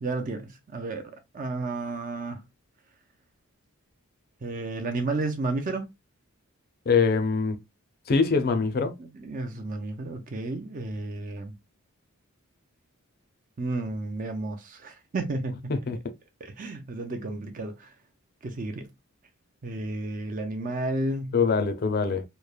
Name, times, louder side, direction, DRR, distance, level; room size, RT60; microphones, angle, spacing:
voice 1, 0.0-2.4 4.4-5.9 9.0-11.6 13.6-15.7 16.4-17.9 18.4-18.9 19.6-21.4, right 2 dB, 35° right, 0.4 m, -32 dB
voice 2, 6.9-7.6 8.1-8.9 15.7-16.0 21.3-22.2, left 5 dB, 45° left, 0.5 m, -23 dB
3.1 x 2.1 x 2.3 m
head